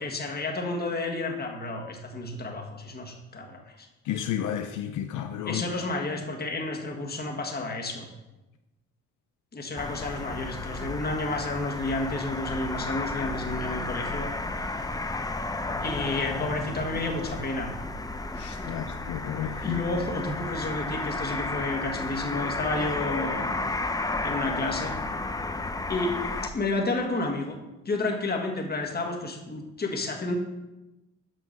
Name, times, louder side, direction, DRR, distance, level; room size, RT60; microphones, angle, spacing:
voice 1, 0.0-3.9 5.4-8.1 9.5-15.1 15.8-17.7 19.5-23.5 24.1-24.9 25.9-27.6 27.8-30.3, left 2 dB, 30° left, 1.6 m, -31 dB
voice 2, 4.1-5.6 18.4-19.8, left 10 dB, 80° left, 0.6 m, -32 dB
sound 1, 9.8-26.5, left 2 dB, 10° left, 0.7 m, -33 dB
7.7 x 5.9 x 5.4 m
cardioid pair, 90°, 30 cm